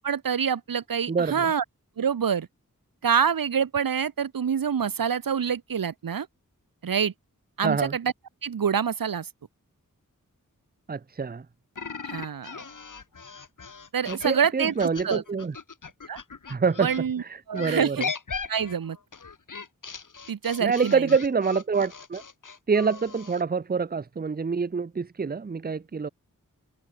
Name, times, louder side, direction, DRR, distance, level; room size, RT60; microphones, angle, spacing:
voice 1, 0.0-1.6 2.0-2.5 3.0-6.3 6.8-7.1 7.6-8.1 8.4-9.3 12.0-12.6 13.9-15.2 16.1-16.2 16.8-17.2 17.5-18.0 18.5-19.0 20.3-21.1, right 7 dB, 85° right, 0.8 m, -26 dB
voice 2, 1.1-1.5 7.6-8.0 10.9-11.5 14.1-15.6 16.5-16.9 17.2-18.1 20.6-22.2 22.7-26.1, right 5 dB, 30° right, 0.6 m, -26 dB
sound 1, 11.7-17.0 17.5-23.4, left 5 dB, 65° left, 1.4 m, -38 dB
wide cardioid pair, 50°, 33 cm